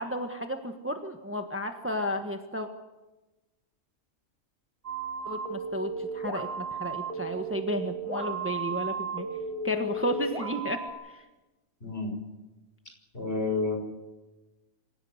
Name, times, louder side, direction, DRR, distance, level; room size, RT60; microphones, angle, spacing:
voice 1, 0.0-2.7 5.2-9.3 9.6-11.2, equal, 10° right, 5 dB, 1.4 m, -33 dB
sound 1, 4.8-10.9, right 3 dB, 25° right, 4.0 m, -34 dB
voice 2, 11.8-12.1 13.1-13.8, left 3 dB, 45° left, 2 dB, 6.2 m, -29 dB
26.5 x 16.0 x 8.1 m, 1.1 s
omnidirectional pair, 1.4 m